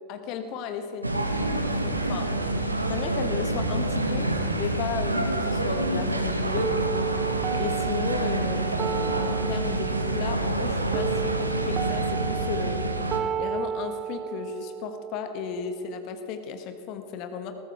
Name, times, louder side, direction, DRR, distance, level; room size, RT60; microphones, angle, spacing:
voice 1, 0.1-1.2 1.8-2.3 2.9-6.9 7.6-12.9 13.4-17.5, left 6 dB, 40° left, 7 dB, 1.4 m, -34 dB
sound 1, 1.0-13.2, right 2 dB, 85° right, 1.2 m, -27 dB
sound 2, 6.6-16.6, right 8 dB, 30° right, 0.3 m, -33 dB
20.5 x 14.5 x 3.5 m, 2.3 s
figure-of-eight pair, 90°, 0 cm